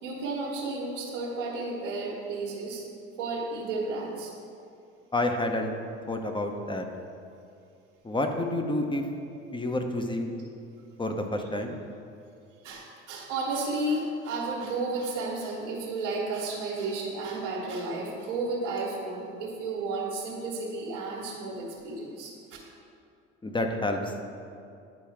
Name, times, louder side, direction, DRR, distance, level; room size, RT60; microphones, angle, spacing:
voice 1, 0.0-2.8 3.2-4.3 12.6-22.3, right 3 dB, 85° right, -8 dB, 1.4 m, -32 dB
voice 2, 5.1-5.7 6.1-6.8 8.0-9.0 9.5-10.3 11.0-11.8 23.4-24.0, left 1 dB, 15° left, 4 dB, 0.8 m, -29 dB
10.5 x 4.5 x 3.4 m, 2.4 s
hypercardioid pair, 65°, 36 cm